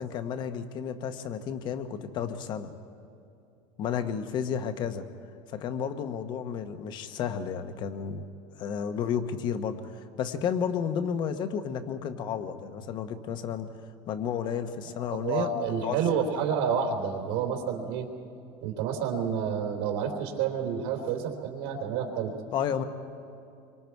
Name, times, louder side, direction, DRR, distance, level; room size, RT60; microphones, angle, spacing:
voice 1, 0.0-2.7 3.8-5.1 5.5-8.3 8.6-13.7 14.1-16.2 22.5-22.8, left 7 dB, 35° left, 9 dB, 1.1 m, -32 dB
voice 2, 14.9-18.1 18.6-22.3, right 7 dB, 65° right, 2 dB, 3.3 m, -29 dB
27.0 x 24.5 x 4.7 m, 2.7 s
cardioid pair, 170°, 13 cm